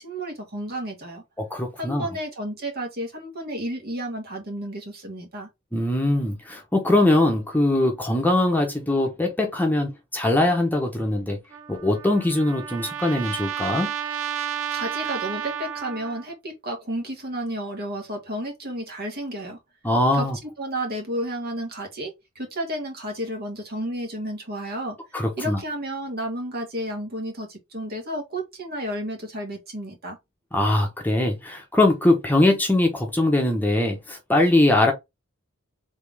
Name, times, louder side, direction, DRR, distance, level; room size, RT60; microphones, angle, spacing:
voice 1, 0.0-1.2 1.8-5.5 14.7-19.6 20.1-25.0 25.4-30.2, right 1 dB, 50° right, 1.7 m, -32 dB
voice 2, 1.4-2.1 5.7-11.4 11.7-13.9 19.8-20.4 25.1-25.6 30.5-34.9, left 1 dB, 10° left, 1.0 m, -21 dB
Trumpet, 11.5-16.3, right 9 dB, 75° right, 0.6 m, -32 dB
3.7 x 3.6 x 3.5 m
head